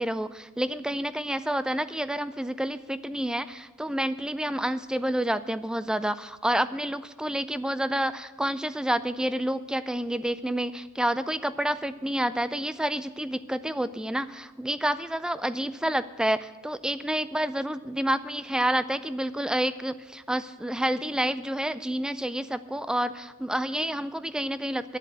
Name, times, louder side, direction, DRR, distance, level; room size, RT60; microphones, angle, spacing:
voice 1, 0.0-25.0, right 1 dB, 5° right, 14 dB, 0.3 m, -29 dB
11.5 x 7.5 x 7.4 m, 1.2 s
head